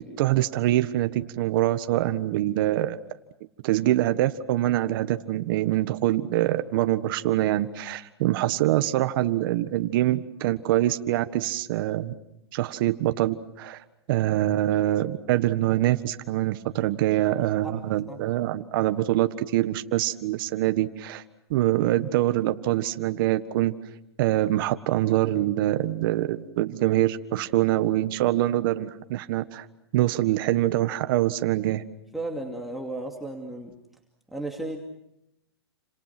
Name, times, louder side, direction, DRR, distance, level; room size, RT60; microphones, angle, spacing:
voice 1, 0.0-3.0 3.6-12.1 12.5-13.8 14.1-21.2 21.5-23.7 24.2-29.6 29.9-31.8, right 14 dB, 55° right, 10 dB, 1.6 m, -24 dB
voice 2, 32.1-33.7 34.3-34.8, right 2 dB, ahead, -1 dB, 2.7 m, -34 dB
30.0 x 27.0 x 6.1 m, 0.83 s
hypercardioid pair, 135°, 14 cm